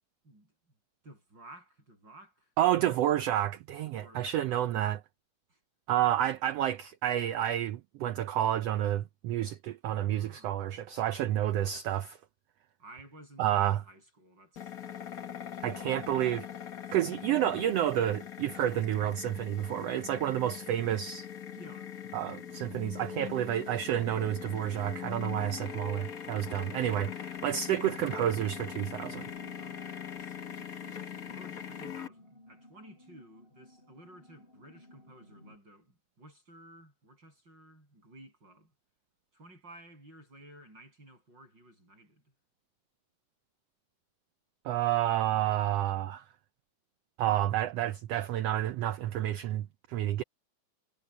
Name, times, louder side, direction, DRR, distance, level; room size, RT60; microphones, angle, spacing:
voice 1, 1.0-2.5 3.8-4.8 5.5-5.6 10.1-10.6 12.8-16.2 16.9-17.0 21.5-22.0 29.5-30.8 31.3-38.7 39.3-42.2, right 1 dB, 35° right, 8.6 m, -55 dB
voice 2, 2.6-5.0 5.9-12.2 13.4-13.8 15.6-16.5 16.9-21.3 22.1-29.3 44.6-46.2 47.2-50.2, right 12 dB, 90° right, 1.4 m, -30 dB
sound 1, 14.6-32.1, left 9 dB, 75° left, 0.8 m, -42 dB
sound 2, 27.3-35.6, left 1 dB, 15° left, 7.7 m, -57 dB
omnidirectional pair, 3.6 m